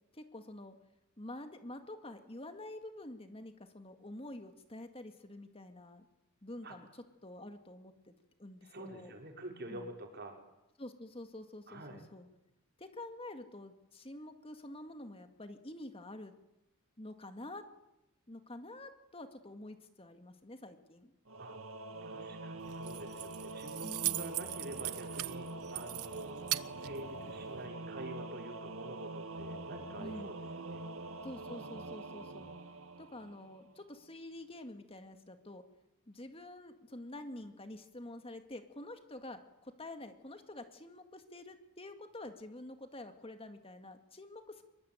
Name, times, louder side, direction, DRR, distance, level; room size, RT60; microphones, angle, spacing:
voice 1, 0.1-0.8 1.2-6.1 6.4-8.1 8.4-9.1 9.7-9.9 10.8-12.3 12.8-16.3 17.0-17.7 18.3-21.1 23.8-24.2 30.0-30.4 31.2-32.5 33.0-35.6 36.1-44.6, left 1 dB, 25° left, 7 dB, 2.0 m, -48 dB
voice 2, 8.6-10.4 11.7-12.0 21.4-21.6 22.0-26.5 26.7-30.4 30.7-30.8, right 1 dB, 50° right, 3 dB, 5.6 m, -47 dB
Singing / Musical instrument, 21.3-33.7, right 2 dB, 65° right, 1.8 m, -45 dB
Keys jangling, 22.6-27.7, right 16 dB, 80° right, 1.0 m, -40 dB
26.0 x 22.5 x 9.1 m, 0.89 s
head